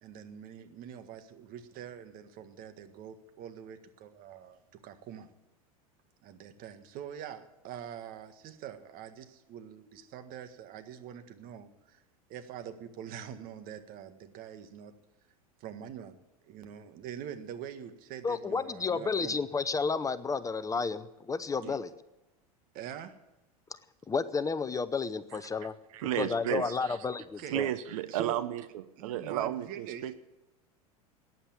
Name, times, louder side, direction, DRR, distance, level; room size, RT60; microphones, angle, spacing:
voice 1, 0.0-5.3 6.2-12.0 12.3-14.9 15.6-16.2 16.5-19.4 21.6-21.8 22.7-23.1 27.4-27.6 28.1-28.4 29.0-30.1, right 9 dB, 50° right, 9 dB, 1.7 m, -44 dB
voice 2, 18.2-21.9 24.1-25.7 26.2-27.7, left 5 dB, 15° left, 14 dB, 0.8 m, -31 dB
voice 3, 25.9-27.0 27.5-30.1, right 12 dB, 70° right, 12 dB, 1.1 m, -33 dB
14.5 x 9.9 x 8.5 m, 0.99 s
hypercardioid pair, 90°, 19 cm